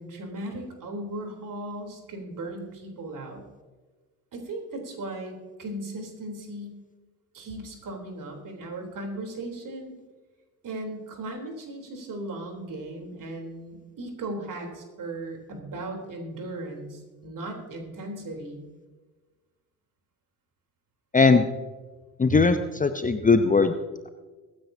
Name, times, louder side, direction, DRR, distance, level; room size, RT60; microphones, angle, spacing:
voice 1, 0.0-3.4 4.3-6.8 7.3-9.9 10.6-18.6 22.3-22.4, right 2 dB, 45° right, 2 dB, 3.8 m, -37 dB
voice 2, 21.1-21.5 22.2-23.7, left 4 dB, 20° left, 9 dB, 0.8 m, -19 dB
23.5 x 9.8 x 2.8 m, 1.3 s
figure-of-eight pair, 55°, 45 cm